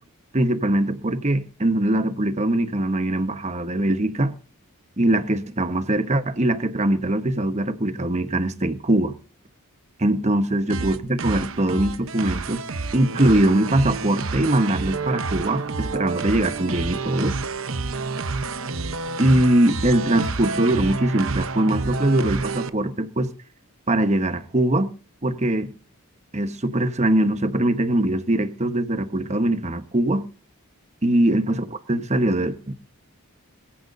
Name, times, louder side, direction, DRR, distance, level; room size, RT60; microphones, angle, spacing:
voice 1, 0.3-4.3 5.0-9.1 10.0-12.6 12.9-17.4 19.2-23.3 23.9-24.9 25.2-25.7 26.3-30.3 31.0-32.7, right 1 dB, 30° right, 1.1 m, -22 dB
sound 1, 10.7-22.7, right 3 dB, 65° right, 0.9 m, -29 dB
21.5 x 15.0 x 2.7 m
head